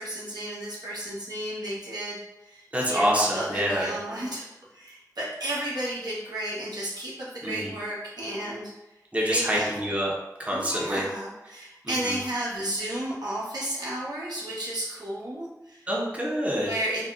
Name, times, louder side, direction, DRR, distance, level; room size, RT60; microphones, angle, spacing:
voice 1, 0.0-8.7 9.3-9.7 10.5-15.9 16.6-17.0, right 1 dB, 85° right, -7 dB, 1.0 m, -33 dB
voice 2, 2.7-4.0 7.4-7.7 9.1-10.1 10.4-11.1 11.8-12.2 15.9-16.7 17.0-17.1, equal, 20° right, -3 dB, 0.7 m, -26 dB
3.6 x 2.2 x 2.4 m, 0.94 s
wide cardioid pair, 50°, 7 cm